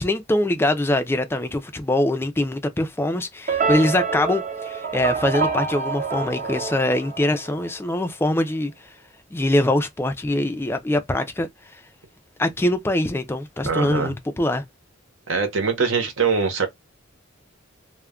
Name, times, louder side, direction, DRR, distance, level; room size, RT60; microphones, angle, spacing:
voice 1, 0.0-8.7 9.3-11.5 12.4-14.6, left 1 dB, 10° left, 0.3 m, -23 dB
sound 1, 3.5-7.8, right 5 dB, 40° right, 0.6 m, -27 dB
voice 2, 13.6-14.2 15.3-16.7, right 5 dB, 70° right, 0.8 m, -22 dB
2.2 x 2.1 x 3.5 m
head